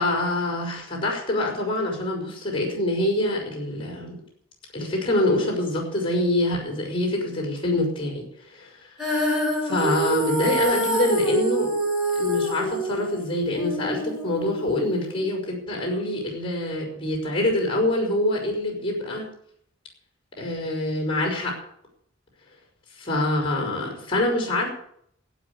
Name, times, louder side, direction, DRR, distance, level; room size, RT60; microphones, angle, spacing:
voice 1, 0.0-4.2 4.7-8.7 9.0-9.1 9.6-11.7 12.2-19.3 20.4-21.5 23.0-24.7, left 1 dB, 25° left, 1 dB, 5.3 m, -25 dB
Female singing, 9.0-15.2, right 1 dB, ahead, 5.9 m, -26 dB
12.5 x 8.7 x 9.7 m, 0.69 s
head